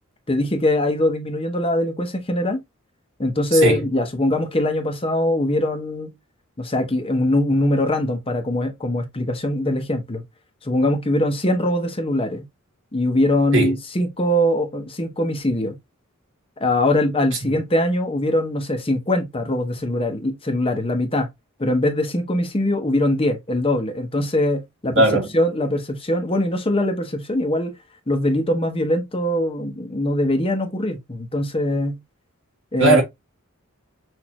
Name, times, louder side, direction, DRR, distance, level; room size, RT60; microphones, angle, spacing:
voice 1, 0.3-2.6 3.2-6.1 6.6-10.2 10.6-12.5 12.9-15.8 16.6-21.3 21.6-25.1 25.3-27.7 28.1-32.0 32.7-33.0, left 1 dB, 25° left, 0.9 m, -22 dB
voice 2, 25.0-25.3 32.8-33.0, right 2 dB, 65° right, 1.8 m, -17 dB
6.1 x 2.7 x 2.9 m
head